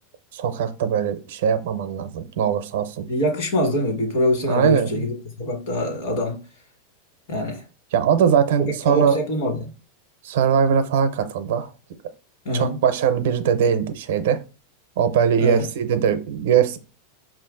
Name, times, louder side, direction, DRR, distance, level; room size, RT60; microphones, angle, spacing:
voice 1, 0.3-3.0 4.5-5.1 7.9-9.2 10.2-11.7 12.5-14.4 15.0-16.8, right 7 dB, 60° right, 0.5 m, -21 dB
voice 2, 3.1-6.4 7.3-7.6 8.6-9.7 12.4-12.8 15.4-15.7, left 1 dB, 55° left, 1.4 m, -24 dB
5.7 x 2.5 x 3.7 m
supercardioid pair, 175°, 0 cm